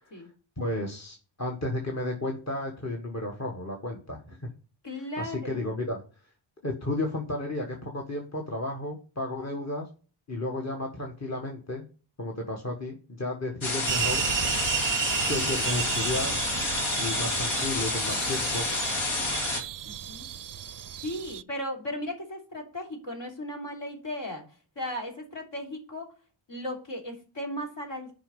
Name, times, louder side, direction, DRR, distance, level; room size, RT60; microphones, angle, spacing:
voice 1, 0.6-4.4 5.2-6.0 6.6-9.9 10.3-11.8 12.2-14.2 15.3-16.4 16.9-18.7, left 2 dB, 35° left, 0 dB, 1.7 m, -33 dB
voice 2, 4.8-5.7 19.8-20.3 20.9-24.4 24.7-26.1 26.5-28.1, left 1 dB, 65° left, 1 dB, 3.3 m, -36 dB
sound 1, 13.6-19.6, left 2 dB, 85° left, 2.4 m, -29 dB
sound 2, 13.9-21.4, right 11 dB, 45° right, 0.4 m, -33 dB
8.8 x 5.4 x 5.4 m, 0.37 s
cardioid pair, 75°, 47 cm